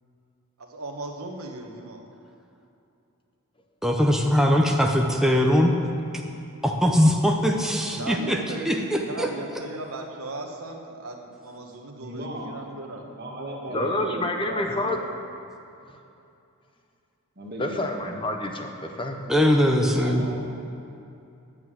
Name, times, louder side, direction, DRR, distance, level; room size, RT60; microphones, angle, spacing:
voice 1, 0.6-2.0 7.9-13.1 13.7-14.0, right 2 dB, 75° right, 3 dB, 1.4 m, -37 dB
voice 2, 3.8-5.7 6.1-6.2 6.6-8.4 8.7-9.3 19.3-20.3, equal, ahead, 1 dB, 0.7 m, -21 dB
voice 3, 11.9-12.5 13.1-15.0 17.4-17.8 19.7-20.6, right 1 dB, 45° right, -2 dB, 1.9 m, -36 dB
voice 4, 13.7-15.0 17.6-19.2, left 1 dB, 25° left, 3 dB, 0.9 m, -28 dB
9.6 x 8.0 x 7.7 m, 2.7 s
head